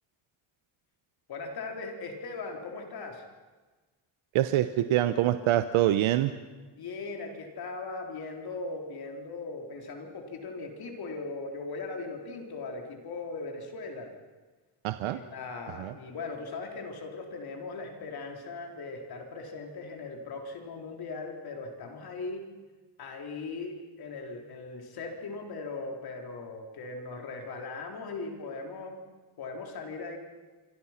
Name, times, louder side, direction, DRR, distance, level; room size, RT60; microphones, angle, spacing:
voice 1, 1.3-3.3 6.8-14.1 15.1-22.5 23.0-29.0 29.4-30.2, left 3 dB, 50° left, 2 dB, 3.9 m, -39 dB
voice 2, 4.3-6.3 14.8-15.2 15.8-15.9, right 13 dB, 80° right, 10 dB, 1.0 m, -25 dB
26.5 x 25.0 x 5.9 m, 1.3 s
cardioid pair, 165°, 49 cm